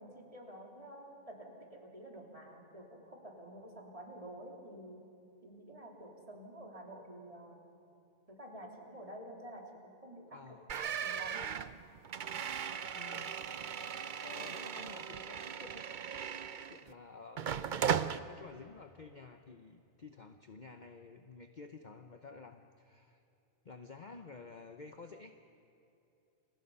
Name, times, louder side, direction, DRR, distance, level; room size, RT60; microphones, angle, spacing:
voice 1, 0.0-5.0 5.4-7.6 8.3-11.4, right 1 dB, 25° right, 0 dB, 3.3 m, -50 dB
voice 2, 10.3-10.8 12.9-13.4 14.2-15.9 16.7-17.9 18.3-23.2 23.6-25.3, left 4 dB, 35° left, 6 dB, 0.9 m, -52 dB
sound 1, 10.7-16.9 17.4-18.2, right 8 dB, 50° right, 0.6 m, -37 dB
29.5 x 24.5 x 5.6 m, 2.8 s
omnidirectional pair, 1.5 m